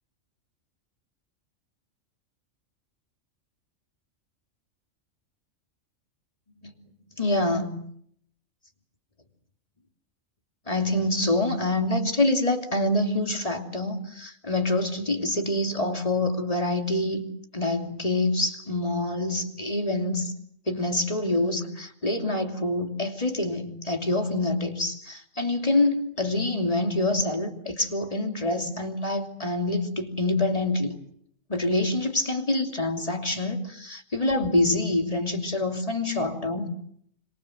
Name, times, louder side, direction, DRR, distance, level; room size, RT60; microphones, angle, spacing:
voice 1, 7.2-7.8 10.7-17.2 17.5-20.3 20.7-31.0 31.5-36.7, left 2 dB, 25° left, 3.1 m, -26 dB
27.5 x 26.0 x 7.9 m
omnidirectional pair, 1.4 m